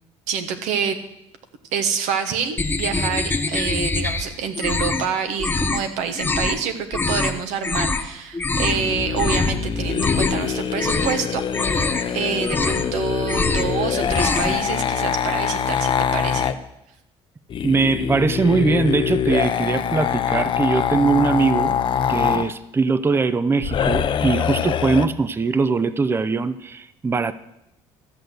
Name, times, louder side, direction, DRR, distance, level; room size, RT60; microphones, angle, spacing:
voice 1, 0.3-1.0 1.7-16.5, right 7 dB, 85° right, 7 dB, 1.4 m, -27 dB
sound 1, 2.6-4.2 4.5-5.1 5.4-5.8 6.2-6.6 6.9-7.3 7.6-8.0 8.3-8.8 9.1-9.5 9.9-10.5 10.8-11.2 11.5-12.0 12.4-12.9 13.2-13.7 14.0-14.6, left 3 dB, 15° left, 1.2 m, -24 dB
sound 2, 8.6-16.5 17.5-22.5 23.6-25.1, left 8 dB, 45° left, 0.8 m, -24 dB
voice 2, 17.6-21.8 22.1-27.3, right 4 dB, 20° right, 14 dB, 0.5 m, -21 dB
13.5 x 6.6 x 7.9 m, 0.85 s
cardioid pair, 95°, 12 cm